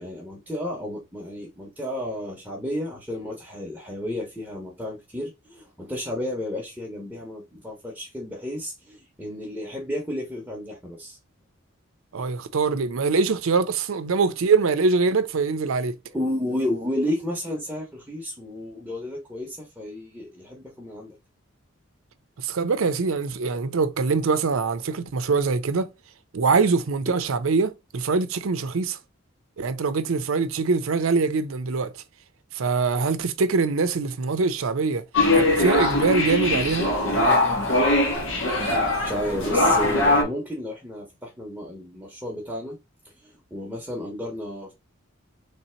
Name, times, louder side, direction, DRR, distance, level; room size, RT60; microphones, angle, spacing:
voice 1, 0.0-11.2 16.1-21.1 39.0-42.8 43.2-44.7, left 1 dB, 5° right, 0.8 m, -32 dB
voice 2, 12.1-15.9 22.4-25.9 26.3-29.0 29.6-31.9 32.5-35.0 35.3-36.9, right 4 dB, 85° right, 0.5 m, -23 dB
sound 1, 35.1-40.2, left 2 dB, 70° left, 1.3 m, -21 dB
3.2 x 2.8 x 4.3 m
head